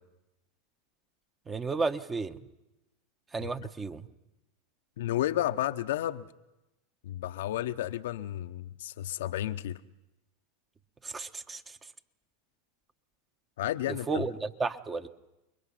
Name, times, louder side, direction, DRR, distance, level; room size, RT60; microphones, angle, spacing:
voice 1, 1.5-2.4 3.3-4.1 11.0-11.8 14.1-15.1, right 4 dB, 20° right, 1.2 m, -33 dB
voice 2, 5.0-6.2 7.0-9.8 13.6-14.2, left 13 dB, 70° left, 0.8 m, -32 dB
29.5 x 22.0 x 5.8 m
hypercardioid pair, 95°, 0 cm